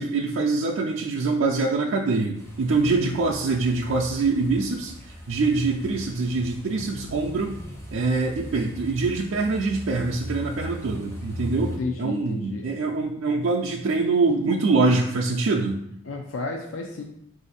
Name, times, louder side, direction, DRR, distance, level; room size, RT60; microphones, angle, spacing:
voice 1, 0.0-4.9 5.3-7.6 7.9-15.8, right 3 dB, 70° right, -2 dB, 0.4 m, -24 dB
sound 1, 2.3-11.8, equal, 15° left, 0.6 m, -39 dB
voice 2, 2.9-3.2 11.8-12.8 16.0-17.0, left 3 dB, 80° left, 2 dB, 0.5 m, -32 dB
4.1 x 2.6 x 4.0 m, 0.76 s
head